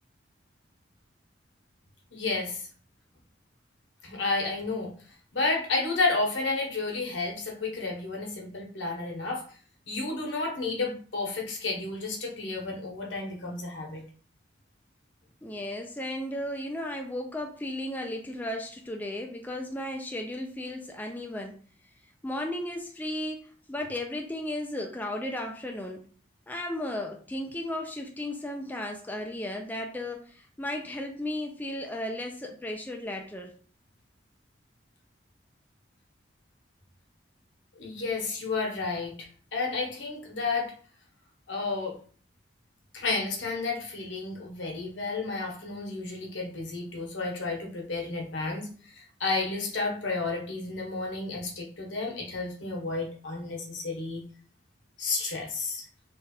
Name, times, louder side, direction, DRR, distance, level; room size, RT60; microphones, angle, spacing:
voice 1, 2.1-2.7 4.0-4.9 5.3-9.4 9.9-14.0 37.8-40.7 41.5-42.0 42.9-54.2 55.0-55.8, left 3 dB, 80° left, 0 dB, 1.1 m, -31 dB
voice 2, 15.4-21.6 22.2-23.4 23.7-26.0 26.5-33.5, left 1 dB, 10° left, 2 dB, 0.4 m, -35 dB
3.2 x 2.4 x 4.3 m, 0.43 s
head